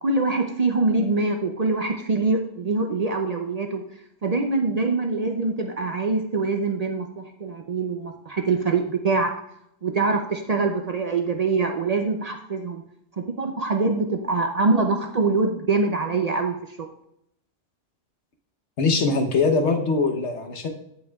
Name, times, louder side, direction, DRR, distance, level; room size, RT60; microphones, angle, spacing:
voice 1, 0.0-3.8 4.2-9.3 9.8-12.8 13.1-16.9, right 3 dB, 50° right, 4 dB, 0.5 m, -24 dB
voice 2, 18.8-20.7, left 3 dB, 80° left, 4 dB, 1.2 m, -22 dB
15.0 x 5.4 x 2.3 m, 0.78 s
omnidirectional pair, 1.2 m